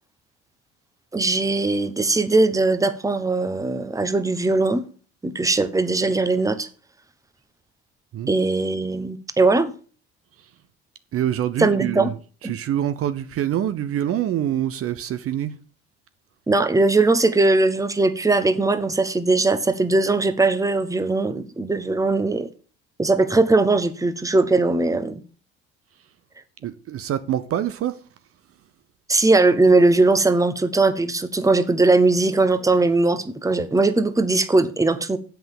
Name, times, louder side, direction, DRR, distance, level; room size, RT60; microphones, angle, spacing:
voice 1, 1.1-4.8 5.2-6.7 8.3-9.7 11.6-12.1 16.5-22.5 23.0-25.2 29.1-35.2, right 3 dB, 10° right, 1.1 m, -20 dB
voice 2, 11.1-12.2 12.4-15.5 26.6-28.0, right 11 dB, 50° right, 0.8 m, -25 dB
7.7 x 5.8 x 7.2 m
hypercardioid pair, 75°, 30 cm